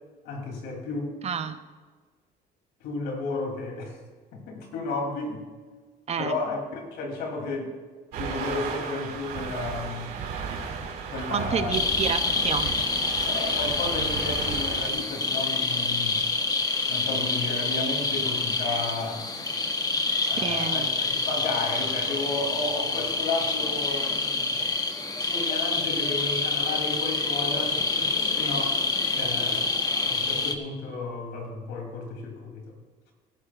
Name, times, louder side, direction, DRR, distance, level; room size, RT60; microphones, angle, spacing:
voice 1, 0.2-1.2 2.8-4.0 4.3-5.4 6.2-7.7 8.1-10.2 11.1-11.8 13.2-16.2 16.9-19.3 20.2-24.5 25.2-28.9 29.1-32.6, left 3 dB, 85° left, 1 dB, 3.1 m, -33 dB
voice 2, 1.2-1.6 6.1-6.3 11.3-12.8 20.4-20.9, right 7 dB, 40° right, 9 dB, 0.7 m, -29 dB
sound 1, 8.1-14.9, right 6 dB, 85° right, 3.3 m, -35 dB
sound 2, 11.7-30.6, left 3 dB, 20° left, 1.0 m, -27 dB
21.0 x 11.5 x 2.5 m, 1.4 s
cardioid pair, 110°, 17 cm